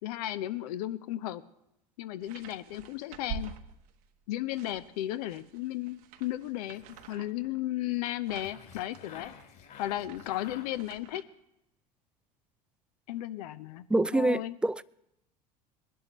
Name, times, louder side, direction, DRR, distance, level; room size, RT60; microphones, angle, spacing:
voice 1, 0.0-1.4 2.0-3.5 4.3-9.4 9.8-11.2 13.1-13.8 14.1-14.6, left 14 dB, 65° left, 0.8 m, -35 dB
sound 1, 2.2-4.1 4.5-11.2, right 7 dB, 65° right, 1.1 m, -47 dB
sound 2, 6.6-7.3 8.3-11.2, left 8 dB, 45° left, 3.4 m, -51 dB
voice 2, 13.9-14.8, right 2 dB, 5° right, 0.3 m, -26 dB
22.0 x 11.0 x 3.0 m
hypercardioid pair, 75°, 21 cm